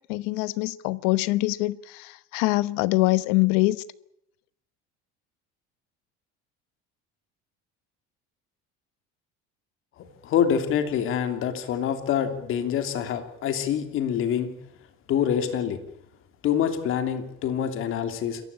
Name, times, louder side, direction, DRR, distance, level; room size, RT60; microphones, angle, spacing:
voice 1, 0.1-3.8, left 20 dB, 85° left, 1.0 m, -24 dB
voice 2, 10.2-14.5 15.1-15.8 16.4-18.4, left 8 dB, 45° left, 2.9 m, -26 dB
27.0 x 15.5 x 8.7 m
cardioid pair, 160°, 29 cm